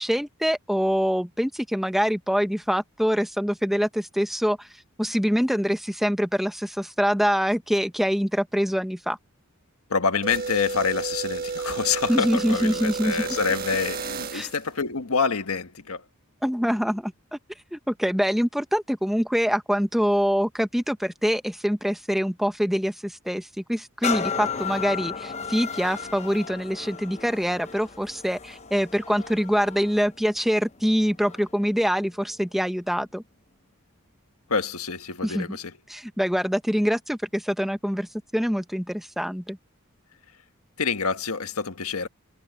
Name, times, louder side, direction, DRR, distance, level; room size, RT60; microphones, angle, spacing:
voice 1, 0.0-4.7 5.0-9.2 12.1-13.2 14.3-14.5 16.4-17.1 17.7-33.2 35.2-35.6 35.9-39.6, equal, ahead, 1.1 m, -25 dB
voice 2, 9.9-16.0 34.5-35.7 40.8-42.1, left 5 dB, 85° left, 1.5 m, -27 dB
sound 1, 10.2-14.6, right 5 dB, 45° right, 1.4 m, -32 dB
sound 2, 24.0-31.6 32.2-32.3, left 6 dB, 30° left, 0.9 m, -34 dB
head